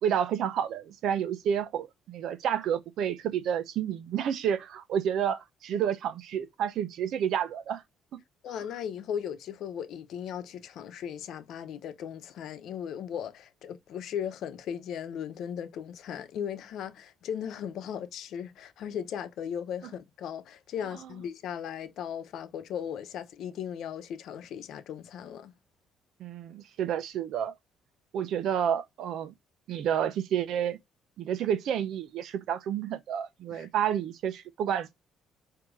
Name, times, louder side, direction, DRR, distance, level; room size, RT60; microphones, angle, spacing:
voice 1, 0.0-7.8 26.2-27.6 28.1-29.3 29.7-30.8 31.2-34.9, right 9 dB, 65° right, 0.9 m, -30 dB
voice 2, 8.4-25.5 33.5-33.7, left 8 dB, 65° left, 0.8 m, -37 dB
8.7 x 2.9 x 4.9 m
cardioid pair, 135°, 0 cm